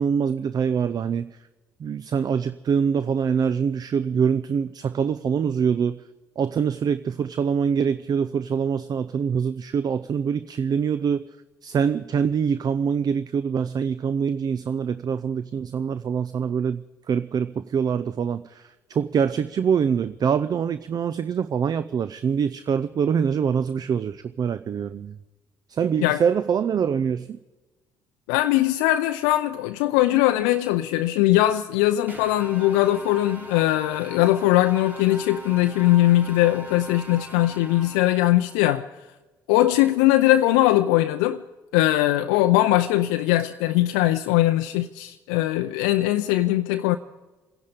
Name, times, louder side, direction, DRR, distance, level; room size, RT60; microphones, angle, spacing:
voice 1, 0.0-1.4 1.8-6.0 6.4-11.3 11.6-25.2 25.7-27.4, right 7 dB, 40° right, 0.5 m, -24 dB
voice 2, 28.3-38.9 39.5-41.4 41.7-47.0, left 15 dB, 70° left, 0.5 m, -20 dB
sound 1, 32.1-38.6, right 1 dB, 15° right, 3.5 m, -41 dB
25.5 x 10.5 x 5.1 m
figure-of-eight pair, 50°, 10 cm